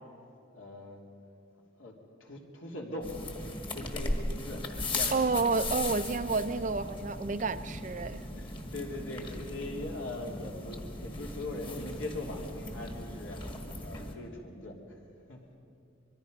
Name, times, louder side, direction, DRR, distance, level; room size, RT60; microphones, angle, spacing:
voice 1, 0.5-1.0 1.8-3.2 3.7-5.4 8.3-13.4 13.8-15.0 15.3-15.6, left 2 dB, 75° left, 0 dB, 3.2 m, -41 dB
sound 1, 3.0-14.1, left 2 dB, 25° left, 1.6 m, -38 dB
voice 2, 5.1-8.2, right 4 dB, 40° right, 11 dB, 0.5 m, -30 dB
24.5 x 22.5 x 5.3 m, 2.6 s
head